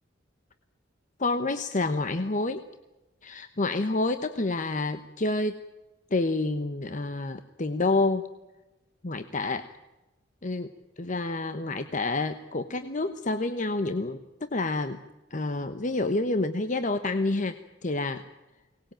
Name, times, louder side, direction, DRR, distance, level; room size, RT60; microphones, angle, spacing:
voice 1, 1.2-2.6 3.2-5.6 6.1-8.3 9.0-9.7 10.4-10.7 11.0-15.0 15.3-17.6 17.8-18.3, left 2 dB, 45° left, 9 dB, 1.0 m, -28 dB
23.5 x 19.5 x 9.0 m, 1.1 s
head